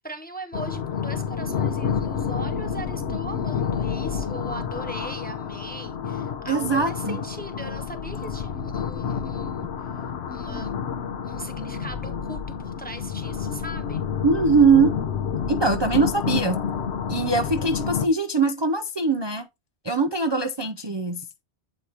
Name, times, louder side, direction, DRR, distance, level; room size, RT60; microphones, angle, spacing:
voice 1, 0.0-10.0 10.3-10.7 11.2-14.0, right 1 dB, 10° left, 0.6 m, -39 dB
sound 1, 0.5-18.1, left 7 dB, 75° left, 1.0 m, -29 dB
voice 2, 6.5-7.2 14.2-15.0 15.5-16.6 17.1-19.5 19.8-21.2, right 4 dB, 35° right, 0.5 m, -21 dB
8.7 x 4.7 x 2.8 m
omnidirectional pair, 1.1 m